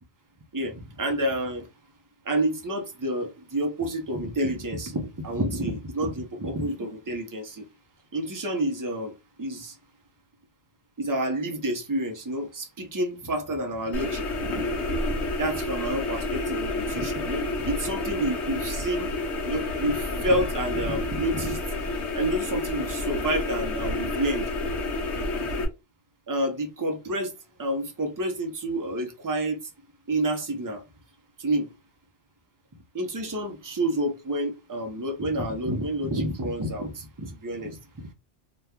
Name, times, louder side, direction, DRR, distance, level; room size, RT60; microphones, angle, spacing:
voice 1, 0.5-1.7 2.2-7.7 8.1-9.1 9.4-9.8 11.0-14.7 15.4-19.1 19.4-24.5 26.3-27.3 27.6-29.6 30.1-30.8 31.4-31.7 32.9-38.1, right 1 dB, 25° right, 0.5 m, -29 dB
sound 1, 13.9-25.6, left 2 dB, 70° left, 1.1 m, -29 dB
2.9 x 2.2 x 3.5 m
omnidirectional pair, 1.2 m